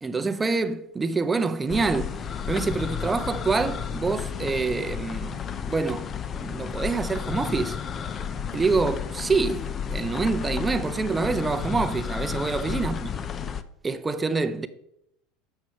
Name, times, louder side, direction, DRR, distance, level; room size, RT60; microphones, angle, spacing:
voice 1, 0.0-2.1 2.5-5.4 5.7-6.1 6.4-7.8 8.5-13.1 13.8-14.7, right 4 dB, 15° right, 0.7 m, -26 dB
sound 1, 1.7-13.6, left 7 dB, 35° left, 0.6 m, -32 dB
8.0 x 6.7 x 5.9 m
supercardioid pair, 105°, 0 cm